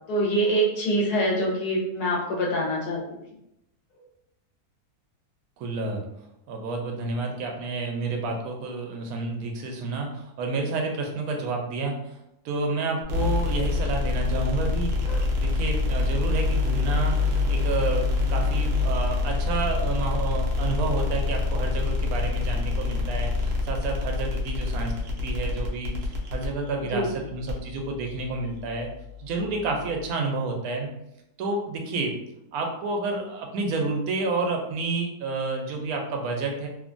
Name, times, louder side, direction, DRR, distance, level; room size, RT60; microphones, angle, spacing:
voice 1, 0.1-3.0 15.1-15.2 26.9-27.1, right 1 dB, 85° left, -2 dB, 1.4 m, -25 dB
voice 2, 5.6-6.0 6.5-12.2 12.4-15.0 15.4-28.9 29.2-30.9 31.4-32.1 32.5-36.7, right 3 dB, 75° right, 2 dB, 1.0 m, -30 dB
sound 1, 13.1-30.1, left 3 dB, 60° right, 0.7 m, -27 dB
3.0 x 2.2 x 2.5 m, 0.81 s
omnidirectional pair, 1.6 m